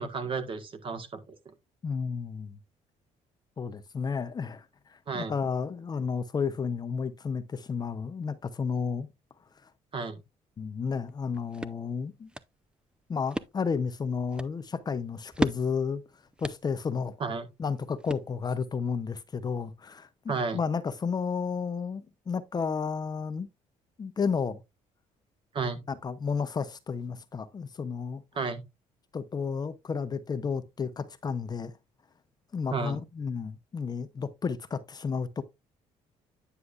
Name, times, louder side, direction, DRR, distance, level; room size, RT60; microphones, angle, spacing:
voice 1, 0.0-1.4 5.1-5.3 9.9-10.2 17.2-17.5 20.3-20.6 25.5-25.8 28.3-28.6 32.7-33.0, right 4 dB, 45° right, 1.6 m, -32 dB
voice 2, 1.8-2.6 3.6-9.1 9.6-9.7 10.6-12.3 13.1-16.0 16.4-17.2 17.6-23.5 24.0-24.6 25.9-28.2 29.1-31.7 32.5-35.4, left 5 dB, 30° left, 0.7 m, -32 dB
sound 1, 11.1-18.7, right 1 dB, 5° right, 0.5 m, -39 dB
9.7 x 6.8 x 2.4 m
cardioid pair, 110°, 13 cm